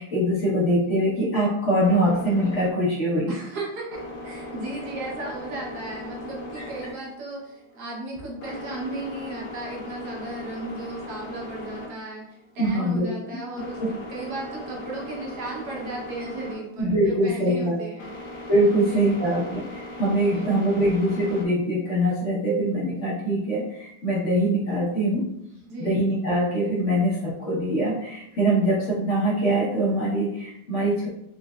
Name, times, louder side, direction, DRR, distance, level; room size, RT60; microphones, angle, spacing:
voice 1, 0.0-3.3 6.6-6.7 12.6-13.1 13.8-13.9 16.8-17.8 18.5-25.3 25.8-31.1, right 1 dB, 50° left, -6 dB, 1.0 m, -23 dB
sound 1, 1.8-21.5, left 1 dB, 75° left, 1.4 m, -39 dB
voice 2, 3.3-18.1 18.7-19.2 20.3-20.6 25.6-25.9, right 2 dB, 60° right, -3 dB, 1.3 m, -35 dB
4.1 x 3.2 x 2.3 m, 0.79 s
omnidirectional pair, 2.2 m